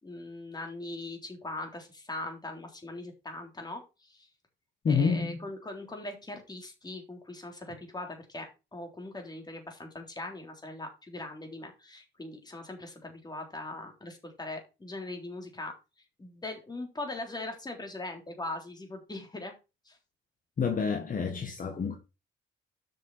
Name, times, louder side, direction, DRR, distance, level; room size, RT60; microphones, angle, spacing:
voice 1, 0.0-4.3 4.9-15.7 16.2-19.5 19.9-20.0, left 2 dB, 20° left, 3.6 m, -40 dB
voice 2, 4.8-5.4 20.6-22.0, left 5 dB, 45° left, 1.7 m, -28 dB
7.5 x 6.3 x 5.7 m
cardioid pair, 90°, 20 cm